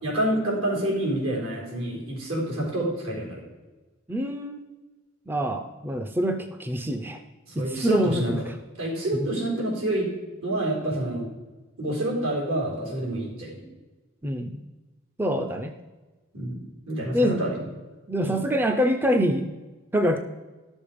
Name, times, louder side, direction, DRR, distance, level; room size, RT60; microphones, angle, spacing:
voice 1, 0.0-3.4 7.5-8.3 8.8-10.1 10.4-11.3 11.8-13.6 16.3-17.6 18.2-18.4, right 1 dB, 85° right, -3 dB, 4.2 m, -28 dB
voice 2, 4.1-4.6 5.3-7.2 7.7-8.4 9.1-9.3 14.2-14.6 15.2-15.7 17.1-17.4 18.1-19.5 19.9-20.2, equal, 10° right, 6 dB, 0.4 m, -25 dB
12.0 x 7.1 x 5.1 m, 1.2 s
head